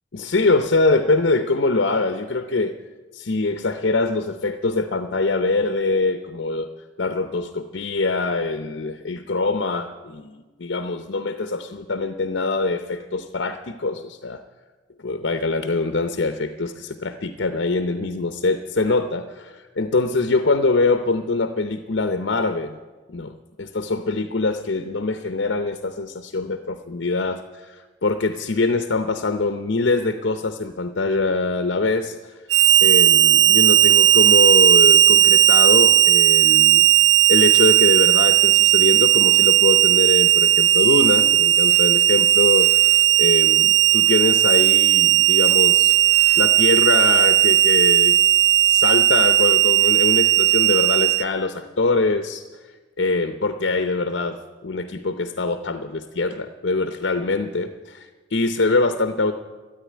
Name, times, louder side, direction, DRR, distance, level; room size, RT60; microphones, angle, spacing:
voice 1, 0.1-2.7 3.1-6.7 7.0-14.4 15.0-22.8 23.1-32.3 32.8-36.9 37.3-45.9 46.3-48.2 48.6-52.4 53.0-59.3, left 3 dB, 65° left, 8 dB, 0.7 m, -23 dB
Harmonica, 32.5-51.2, right 13 dB, 75° right, 0.5 m, -15 dB
13.5 x 9.0 x 9.5 m, 1.3 s
head